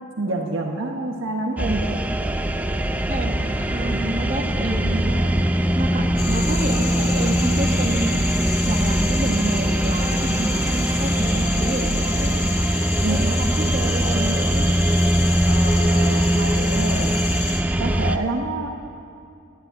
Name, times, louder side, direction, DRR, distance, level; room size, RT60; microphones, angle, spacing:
voice 1, 0.2-2.0 13.0-13.9 15.5-17.2 17.8-18.7, right 2 dB, 60° right, 1 dB, 1.1 m, -27 dB
sound 1, 1.6-18.2, right 1 dB, 5° right, 0.4 m, -21 dB
voice 2, 3.1-5.3 5.7-8.2 8.6-12.4 13.1-14.8, right 2 dB, 35° right, 1 dB, 1.5 m, -29 dB
sound 2, 6.2-17.6, left 5 dB, 80° left, 2.5 m, -31 dB
14.0 x 9.7 x 9.3 m, 2.5 s
head